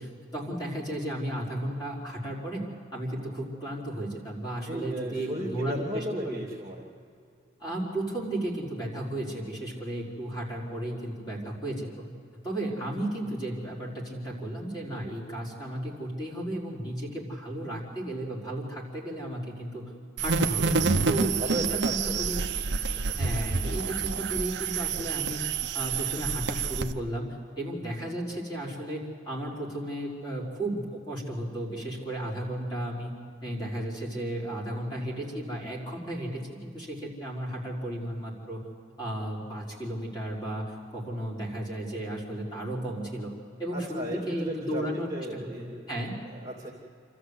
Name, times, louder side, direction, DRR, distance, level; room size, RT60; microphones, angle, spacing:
voice 1, 0.0-2.6 2.9-6.4 7.6-12.1 12.3-19.9 20.2-22.4 23.2-25.4 25.7-33.1 33.4-38.6 39.0-43.3 43.6-46.1, right 1 dB, 20° left, -5 dB, 5.0 m, -34 dB
voice 2, 4.7-6.8 21.2-22.5 43.7-45.9 46.3-46.7, right 1 dB, 20° right, -3 dB, 2.6 m, -35 dB
sound 1, 20.2-26.9, right 4 dB, 60° right, 0.9 m, -28 dB
28.0 x 13.5 x 8.1 m, 2.5 s
head